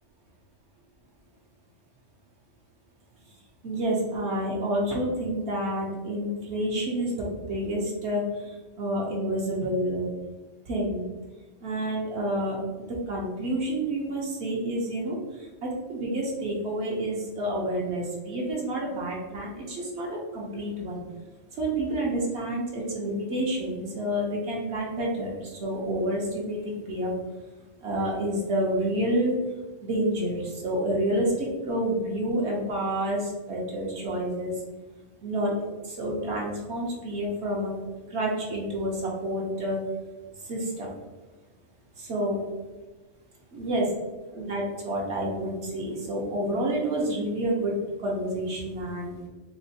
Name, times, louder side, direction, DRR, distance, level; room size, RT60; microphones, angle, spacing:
voice 1, 3.6-8.2 8.8-10.1 10.7-11.0 11.6-15.2 15.6-21.0 21.6-27.1 27.8-29.3 29.8-34.5 35.2-35.5 35.8-37.8 38.1-39.8 40.5-40.9 42.0-42.4 43.5-43.8 44.3-47.7 48.0-49.3, right 1 dB, 65° right, -3 dB, 0.9 m, -29 dB
4.1 x 2.2 x 2.7 m, 1.2 s
omnidirectional pair, 1.3 m